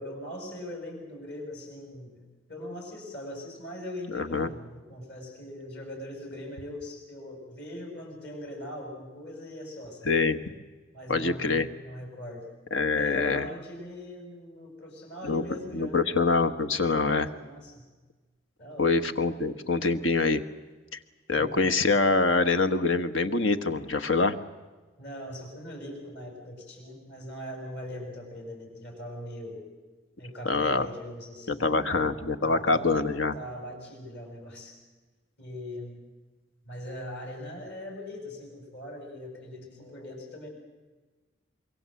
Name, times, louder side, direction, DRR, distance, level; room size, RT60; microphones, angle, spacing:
voice 1, 0.0-10.2 10.9-12.5 12.9-16.0 16.8-17.9 18.6-18.9 21.3-21.7 25.0-29.7 30.2-34.8 35.4-36.0 36.6-40.5, left 1 dB, 55° left, 2 dB, 7.5 m, -41 dB
voice 2, 4.1-4.5 10.0-10.4 11.1-11.7 12.7-13.5 15.2-15.4 15.7-17.3 18.8-20.4 21.3-24.4 30.4-30.9 31.5-33.3, left 3 dB, 75° left, 8 dB, 1.4 m, -25 dB
25.5 x 23.0 x 7.8 m, 1.3 s
head